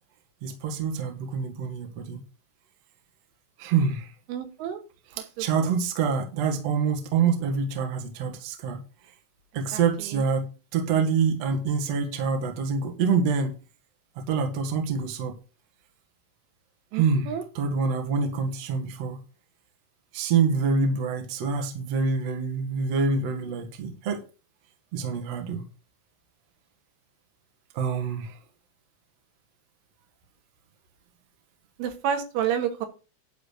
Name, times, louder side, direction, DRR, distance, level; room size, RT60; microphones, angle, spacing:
voice 1, 0.4-2.2 3.6-4.1 5.2-8.8 9.5-10.5 10.7-13.6 14.3-15.3 16.9-19.2 20.1-24.2 24.9-25.6 27.7-28.4, right 5 dB, 55° right, 4 dB, 1.9 m, -26 dB
voice 2, 4.3-4.8 5.1-5.7 9.7-10.2 16.9-17.4 31.8-32.9, right 9 dB, 80° right, 5 dB, 4.0 m, -30 dB
11.5 x 4.2 x 6.5 m, 0.33 s
omnidirectional pair, 5.7 m